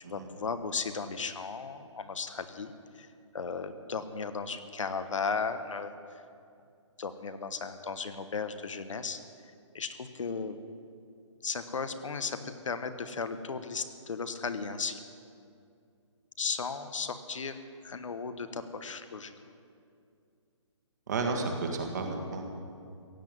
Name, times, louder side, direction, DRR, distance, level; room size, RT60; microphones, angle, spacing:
voice 1, 0.0-3.1 3.3-5.9 7.0-9.2 9.7-10.6 11.4-15.0 16.4-17.6 17.8-19.3, left 5 dB, 75° left, 10 dB, 1.2 m, -35 dB
voice 2, 21.1-22.5, right 3 dB, 35° right, 3 dB, 1.8 m, -32 dB
16.0 x 8.0 x 9.1 m, 2.4 s
hypercardioid pair, 175°, 16 cm